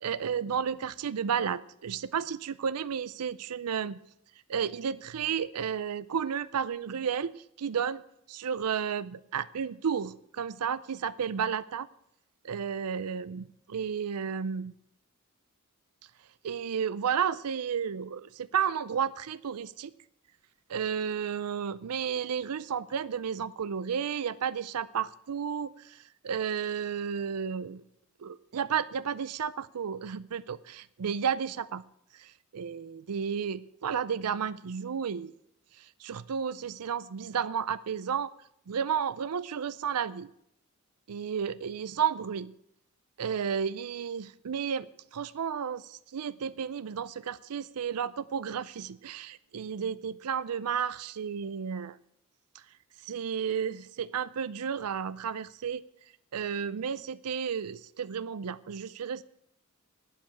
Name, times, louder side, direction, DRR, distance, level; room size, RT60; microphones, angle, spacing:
voice 1, 0.0-4.0 4.5-8.0 8.3-11.9 12.4-14.7 16.4-19.9 20.7-27.8 28.2-31.8 32.1-35.3 35.8-38.3 38.7-40.3 41.1-42.5 43.2-52.0 52.5-52.6 53.0-55.8 56.3-59.2, right 7 dB, 85° right, 0.5 m, -32 dB
12.0 x 8.5 x 8.9 m
head